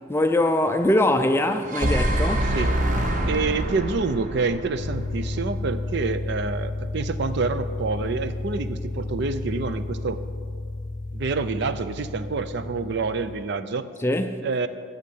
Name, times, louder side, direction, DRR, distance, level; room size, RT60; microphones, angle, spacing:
voice 1, 0.1-2.5 14.0-14.4, left 1 dB, 10° left, 0.4 m, -22 dB
sound 1, 1.4-5.6, right 1 dB, 40° right, 0.9 m, -25 dB
voice 2, 3.3-10.2 11.1-13.9 14.4-14.7, right 4 dB, 55° right, 0.5 m, -27 dB
sound 2, 4.8-13.4, left 2 dB, 60° left, 0.7 m, -32 dB
8.2 x 6.6 x 8.4 m
head